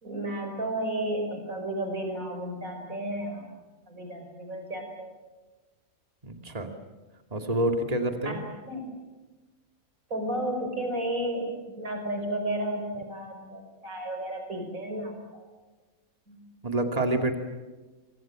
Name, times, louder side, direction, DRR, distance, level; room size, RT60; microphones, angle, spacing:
voice 1, 0.0-3.5 3.9-5.2 8.2-8.9 10.1-15.5 16.3-16.4, right 1 dB, 70° right, 4 dB, 5.8 m, -33 dB
voice 2, 6.2-6.7 7.3-8.4 16.6-17.4, right 1 dB, 25° right, 5 dB, 2.6 m, -27 dB
25.5 x 25.0 x 7.7 m, 1.2 s
omnidirectional pair, 1.5 m